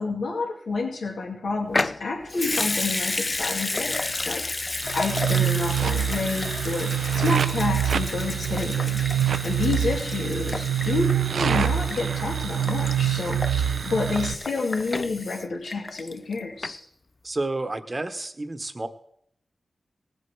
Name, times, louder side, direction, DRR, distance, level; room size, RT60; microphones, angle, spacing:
voice 1, 0.0-4.4 4.9-16.8, left 3 dB, 85° left, -1 dB, 2.5 m, -29 dB
Water tap faucet / Sink (filling or washing) / Liquid, 1.7-16.3 16.6-16.7, left 2 dB, 40° left, 0.5 m, -32 dB
sound 1, 4.8-14.3, right 9 dB, 85° right, 0.6 m, -25 dB
voice 2, 17.2-18.9, right 2 dB, 35° right, 9 dB, 1.1 m, -30 dB
18.0 x 7.9 x 4.7 m, 0.73 s
cardioid pair, 50°, 0 cm